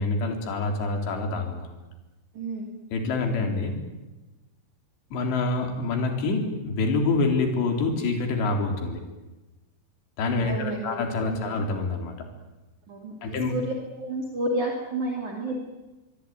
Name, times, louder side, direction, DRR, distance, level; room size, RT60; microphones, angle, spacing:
voice 1, 0.0-1.7 2.9-3.8 5.1-9.0 10.2-12.2 13.2-13.5, left 3 dB, 65° left, 3 dB, 5.8 m, -26 dB
voice 2, 2.4-2.8 10.4-11.6 12.9-15.6, right 1 dB, 45° right, 0 dB, 3.7 m, -31 dB
24.5 x 24.0 x 9.4 m, 1.1 s
omnidirectional pair, 5.6 m